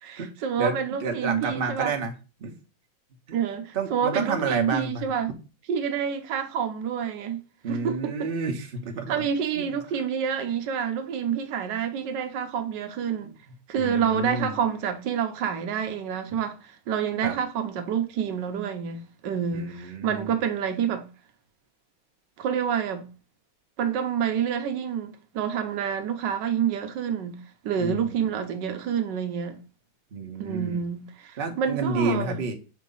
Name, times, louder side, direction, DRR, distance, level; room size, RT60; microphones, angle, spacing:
voice 1, 0.0-1.9 3.3-5.3 5.7-7.4 7.7-8.3 9.1-13.3 13.7-21.1 22.4-23.1 23.8-29.6 30.4-32.4, right 8 dB, 65° right, 1.4 m, -28 dB
voice 2, 0.6-2.1 2.4-2.5 3.3-3.4 3.7-5.0 7.6-9.2 9.6-9.7 13.2-13.4 13.8-14.5 17.2-17.3 19.5-20.4 27.8-28.2 30.1-30.8 31.4-32.5, right 4 dB, 40° right, 0.9 m, -29 dB
6.1 x 2.9 x 5.3 m
omnidirectional pair, 2.3 m